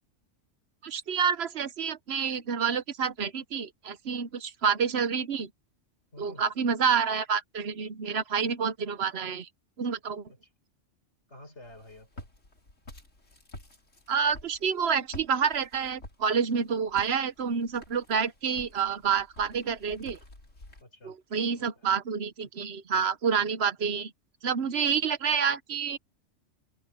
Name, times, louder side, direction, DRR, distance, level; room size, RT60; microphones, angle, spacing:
voice 1, 0.8-5.5 6.2-9.5 9.8-10.3 14.1-20.2 21.0-24.1 24.4-26.0, right 6 dB, 60° right, 1.1 m, -28 dB
voice 2, 6.1-6.5 10.3-10.4 11.3-12.3 20.8-21.2 21.5-21.9, left 1 dB, 60° left, 5.3 m, -50 dB
Walk footsteps, 11.6-20.8, left 1 dB, 85° left, 4.7 m, -49 dB
open air
omnidirectional pair, 1.3 m